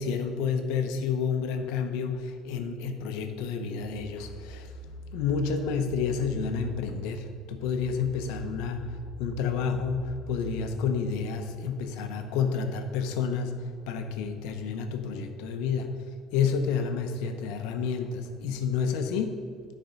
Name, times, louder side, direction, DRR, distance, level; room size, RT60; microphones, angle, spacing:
voice 1, 0.0-15.9 16.3-19.4, left 6 dB, 80° left, 6 dB, 1.0 m, -30 dB
sound 1, 4.0-11.5, equal, 80° right, 1.5 m, -44 dB
13.0 x 4.7 x 5.3 m, 2.2 s
cardioid pair, 135°, 0 cm